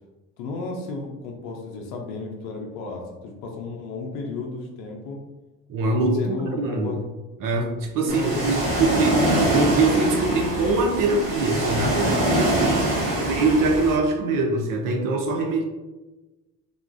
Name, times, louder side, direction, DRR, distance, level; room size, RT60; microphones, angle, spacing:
voice 1, 0.4-5.2 6.1-7.0 8.0-9.1 12.6-13.6, left 3 dB, 90° left, 1 dB, 0.5 m, -34 dB
voice 2, 5.7-6.9 7.4-12.9 13.3-15.6, right 3 dB, 60° right, 2 dB, 0.6 m, -23 dB
Ocean, 8.1-14.0, right 1 dB, 75° right, 1.3 m, -24 dB
3.5 x 2.3 x 2.5 m, 1.1 s
supercardioid pair, 65°, 37 cm